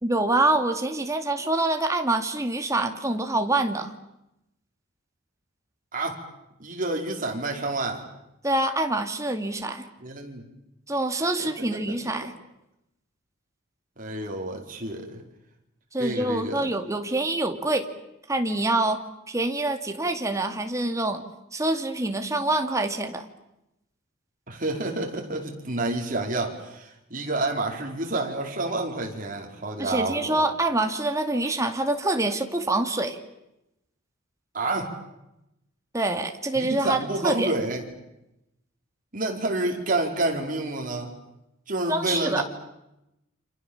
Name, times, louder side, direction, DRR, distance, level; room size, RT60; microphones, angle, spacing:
voice 1, 0.0-3.9 8.4-9.9 10.9-12.3 15.9-17.9 18.3-19.0 19.3-21.2 21.5-23.3 29.8-33.2 35.9-37.5 41.9-42.4, right 2 dB, 15° right, 5 dB, 2.4 m, -26 dB
voice 2, 6.6-8.0 10.0-10.4 11.4-11.8 14.0-15.2 16.0-16.6 24.5-30.5 34.5-35.0 36.5-37.8 39.1-41.1 41.7-42.4, right 2 dB, 40° right, 2 dB, 4.9 m, -29 dB
29.0 x 27.5 x 7.3 m, 0.88 s
head